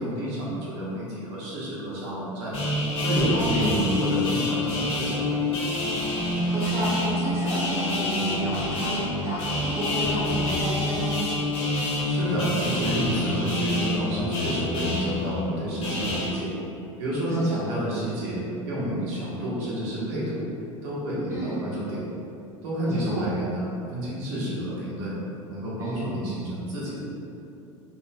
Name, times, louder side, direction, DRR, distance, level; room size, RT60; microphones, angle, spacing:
voice 1, 0.0-2.5 3.0-5.4 12.0-16.5 17.0-20.5 20.8-22.0 22.6-23.6 23.9-25.1 25.5-27.0, right 1 dB, 50° right, -8 dB, 1.2 m, -29 dB
sound 1, 2.5-16.3, left 1 dB, 35° left, 1.3 m, -27 dB
voice 2, 3.3-3.8 6.3-11.1 17.4-17.7 21.3-21.6 22.9-23.3 25.8-26.0, equal, 15° right, -8 dB, 1.0 m, -32 dB
4.4 x 3.6 x 2.3 m, 2.7 s
figure-of-eight pair, 75°, 16 cm